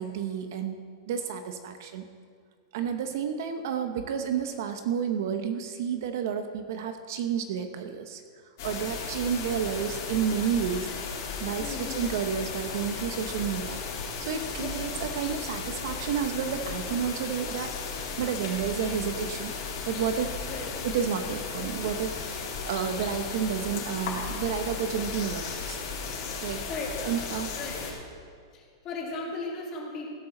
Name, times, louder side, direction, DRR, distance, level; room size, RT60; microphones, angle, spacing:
voice 1, 0.0-2.0 2.7-8.2 8.6-10.9 11.4-13.8 14.2-17.7 18.2-19.5 19.9-20.4 20.8-22.2 22.7-25.8 26.4-26.7 27.0-27.5, right 8 dB, 50° right, 7 dB, 0.9 m, -30 dB
sound 1, 8.6-27.9, left 5 dB, 45° left, 3.6 m, -35 dB
voice 2, 11.6-12.1 14.6-14.7 20.5-20.7 26.7-27.1 27.6-27.9 28.5-30.1, left 3 dB, 25° left, -2 dB, 2.5 m, -36 dB
16.0 x 13.0 x 3.9 m, 2.1 s
supercardioid pair, 170°, 2 cm